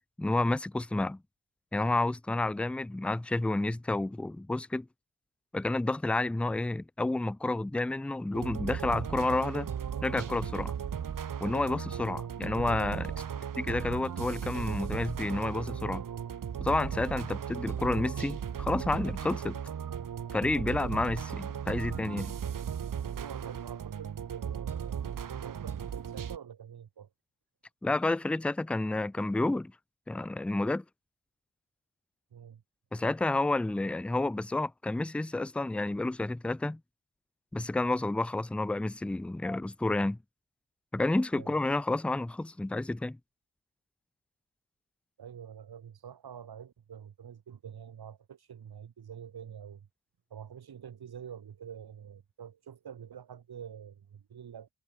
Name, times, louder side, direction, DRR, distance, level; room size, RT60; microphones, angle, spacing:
voice 1, 0.2-1.2 1.7-4.9 5.5-9.7 10.0-10.7 11.4-13.1 13.6-16.0 16.6-19.6 20.3-22.3 27.8-29.7 30.1-30.8 32.9-36.8 37.5-40.2 40.9-43.2, left 2 dB, 5° left, 0.3 m, -30 dB
sound 1, 8.3-26.4, right 8 dB, 55° right, 1.2 m, -36 dB
voice 2, 13.1-13.4 23.1-25.0 25.3-27.1 32.3-32.6 41.4-41.6 45.2-49.9 50.3-54.7, right 8 dB, 70° right, 2.9 m, -47 dB
supercardioid pair, 40°, 39 cm